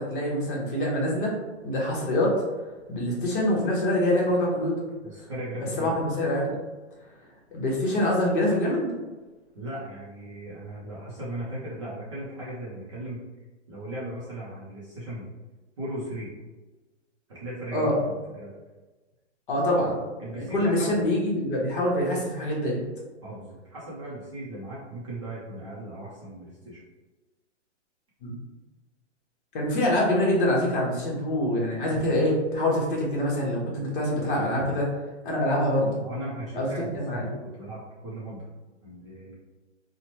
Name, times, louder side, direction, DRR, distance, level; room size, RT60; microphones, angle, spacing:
voice 1, 0.0-1.3 1.6-2.4 2.9-4.7 5.8-6.6 7.5-8.9 17.7-18.0 19.5-20.0 20.3-22.8 28.2-28.3 29.5-34.9 35.2-35.9 36.5-37.2, left 1 dB, 45° left, -3 dB, 1.0 m, -25 dB
voice 2, 5.0-6.0 9.5-13.2 13.7-15.3 15.8-16.3 17.3-18.5 20.2-21.1 23.2-26.8 36.0-38.5 38.8-39.3, right 1 dB, 25° right, -7 dB, 0.5 m, -37 dB
2.9 x 2.1 x 2.9 m, 1.2 s
hypercardioid pair, 160°, 36 cm